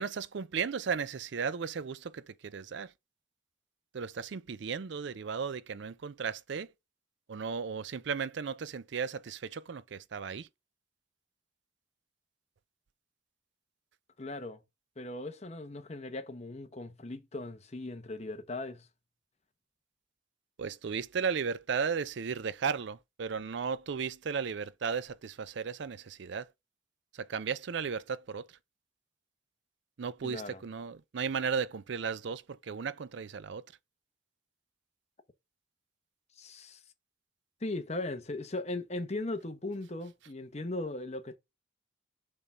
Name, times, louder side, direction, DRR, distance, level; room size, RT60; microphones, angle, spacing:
voice 1, 0.0-2.9 3.9-6.7 7.3-10.5 20.6-26.5 27.1-28.5 30.0-33.6, right 6 dB, 60° right, 0.4 m, -35 dB
voice 2, 14.2-14.6 15.0-18.9 30.2-30.6 36.4-36.8 37.6-41.4, left 2 dB, 30° left, 0.9 m, -38 dB
6.8 x 3.5 x 5.2 m
head